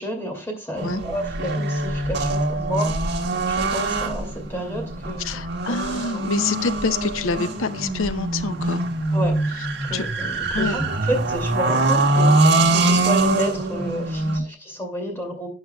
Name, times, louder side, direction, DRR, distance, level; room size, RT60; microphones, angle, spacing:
voice 1, 0.0-3.2 3.5-6.2 9.1-15.5, equal, 10° left, 3 dB, 2.5 m, -31 dB
sound 1, 0.8-14.4, right 2 dB, 55° right, 1.5 m, -23 dB
voice 2, 5.2-8.8 9.9-10.1 10.5-10.8 14.3-14.4, left 4 dB, 85° left, 12 dB, 0.7 m, -26 dB
12.0 x 9.0 x 2.3 m, 0.32 s
head